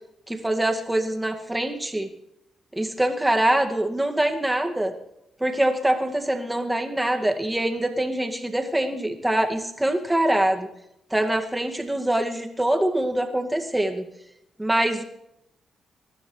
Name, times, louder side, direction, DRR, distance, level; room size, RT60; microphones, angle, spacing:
voice 1, 0.3-2.1 2.8-4.9 5.4-10.7 11.1-14.1 14.6-15.0, right 1 dB, 10° right, 4 dB, 2.1 m, -24 dB
24.5 x 12.0 x 3.3 m, 0.81 s
cardioid pair, 70°, 0 cm